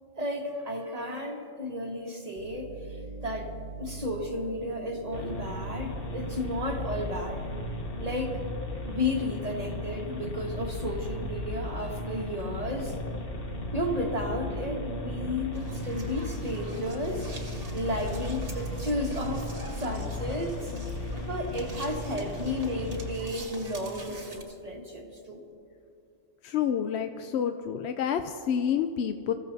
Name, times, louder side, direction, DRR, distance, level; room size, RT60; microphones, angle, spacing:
voice 1, 0.2-7.5 8.0-8.4 8.8-13.0 13.7-17.3 17.7-20.7 21.3-25.4, left 1 dB, 30° right, 0 dB, 1.6 m, -33 dB
sound 1, 2.4-19.4, right 3 dB, 75° right, 1.3 m, -41 dB
sound 2, 5.1-23.1, left 2 dB, 50° left, 1.3 m, -37 dB
sound 3, 15.5-24.4, right 2 dB, 50° right, 1.8 m, -44 dB
voice 2, 26.4-29.3, left 8 dB, 70° left, 7 dB, 0.8 m, -28 dB
27.5 x 15.0 x 2.7 m, 2.5 s
omnidirectional pair, 1.3 m